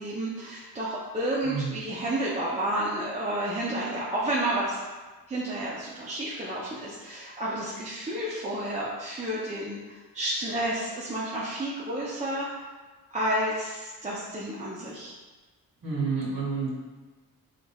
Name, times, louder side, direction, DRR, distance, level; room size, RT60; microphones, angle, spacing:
voice 1, 0.0-4.8 5.3-12.6 13.1-15.2, right 1 dB, 20° right, -7 dB, 0.4 m, -31 dB
voice 2, 1.4-1.8 15.8-16.7, right 5 dB, 60° right, -6 dB, 1.5 m, -29 dB
5.0 x 2.0 x 2.2 m, 1.3 s
wide cardioid pair, 115°, 37 cm